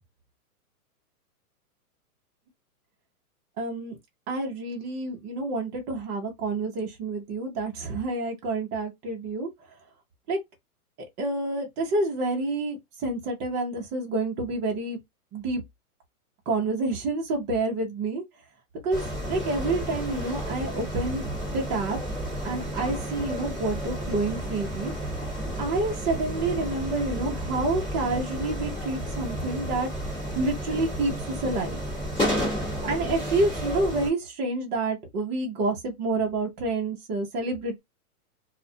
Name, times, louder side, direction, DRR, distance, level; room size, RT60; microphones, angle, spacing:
voice 1, 3.6-4.0 4.3-9.5 10.3-10.4 11.2-12.8 13.0-15.0 15.3-15.6 16.5-18.2 18.8-22.0 22.4-24.9 25.6-29.9 30.3-31.8 32.8-37.8, right 2 dB, 15° right, 0.5 m, -28 dB
sound 1, 18.9-34.1, equal, 10° left, 1.0 m, -32 dB
2.4 x 2.0 x 2.6 m
hypercardioid pair, 145°, 45 cm